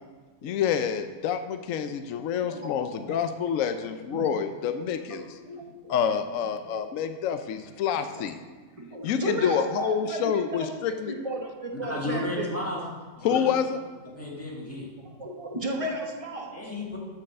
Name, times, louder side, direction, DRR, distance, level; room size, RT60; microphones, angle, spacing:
voice 1, 0.4-5.2 5.9-8.4 9.0-11.1 13.2-13.8, left 8 dB, 70° left, 8 dB, 0.9 m, -27 dB
voice 2, 4.6-5.9 6.7-6.9 8.1-8.2 8.8-12.5 15.0-16.6, right 1 dB, 25° right, 0 dB, 1.2 m, -35 dB
voice 3, 11.9-12.8 13.2-13.5 14.2-14.9 16.5-17.0, left 1 dB, 10° left, -4 dB, 2.1 m, -33 dB
7.4 x 6.7 x 6.4 m, 1.4 s
omnidirectional pair, 1.5 m